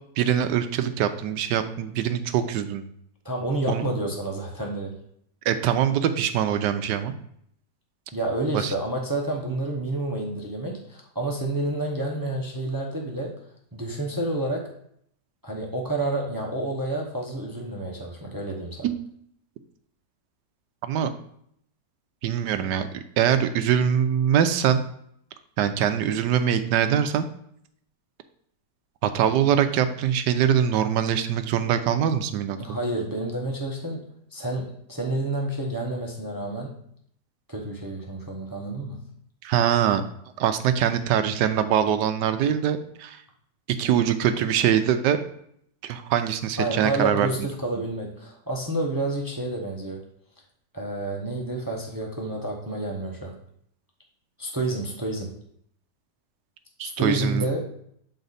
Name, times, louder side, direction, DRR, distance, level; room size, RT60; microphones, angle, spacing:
voice 1, 0.2-2.8 3.7-3.8 5.5-7.1 8.5-8.7 18.8-18.9 20.9-21.1 22.2-22.9 23.2-24.8 25.6-27.3 29.0-32.8 39.4-40.0 40.4-43.2 43.8-45.2 45.8-47.3 56.8-57.4, right 9 dB, 90° right, 9 dB, 1.2 m, -23 dB
voice 2, 3.2-5.0 8.1-13.3 13.7-14.7 15.4-18.9 32.6-34.0 34.3-36.7 37.5-39.0 46.6-50.0 50.7-53.4 54.4-55.4 56.8-57.6, right 2 dB, 20° right, 0 dB, 0.6 m, -29 dB
8.0 x 4.2 x 4.0 m, 0.69 s
omnidirectional pair, 1.8 m